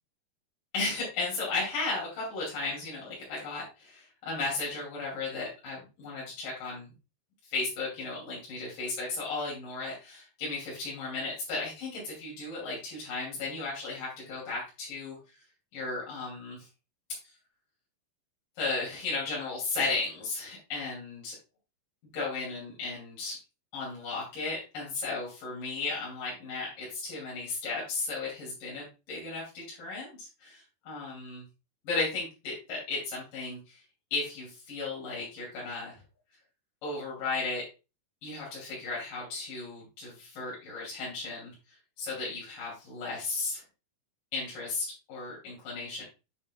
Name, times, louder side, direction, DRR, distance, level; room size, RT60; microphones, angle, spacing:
voice 1, 0.7-6.9 7.5-15.2 15.7-16.7 18.6-21.4 22.1-23.4 23.7-31.4 31.8-33.8 34.1-36.0 36.8-37.7 38.2-41.5 42.0-43.6 44.3-46.0, left 3 dB, 60° left, -6 dB, 4.4 m, -35 dB
8.8 x 5.3 x 2.4 m, 0.29 s
omnidirectional pair, 4.4 m